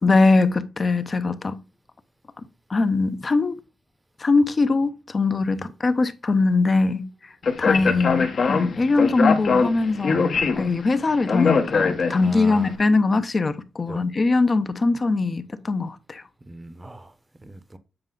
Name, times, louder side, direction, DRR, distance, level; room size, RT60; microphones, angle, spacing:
voice 1, 0.0-1.6 2.7-3.6 4.2-7.3 7.6-10.3 10.6-16.2, left 3 dB, 35° left, 0.7 m, -21 dB
Speech, 7.4-12.5, left 4 dB, 55° left, 1.1 m, -22 dB
voice 2, 12.2-12.7 13.9-14.0 16.5-17.1 17.4-17.8, right 1 dB, 15° right, 0.8 m, -38 dB
7.8 x 4.9 x 3.8 m
cardioid pair, 110°, 0 cm